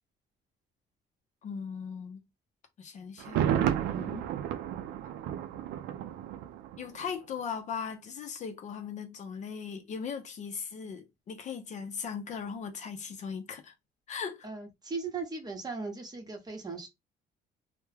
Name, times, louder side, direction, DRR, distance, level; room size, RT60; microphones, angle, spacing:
voice 1, 1.4-2.2 2.8-3.5 6.8-13.7 14.1-14.5, left 6 dB, 45° left, 0.5 m, -38 dB
Thunder, 3.2-7.1 7.4-7.5, right 10 dB, 80° right, 0.4 m, -32 dB
voice 2, 3.9-4.2 14.4-16.9, right 4 dB, 25° right, 0.9 m, -38 dB
2.2 x 2.1 x 3.2 m
cardioid pair, 110°, 17 cm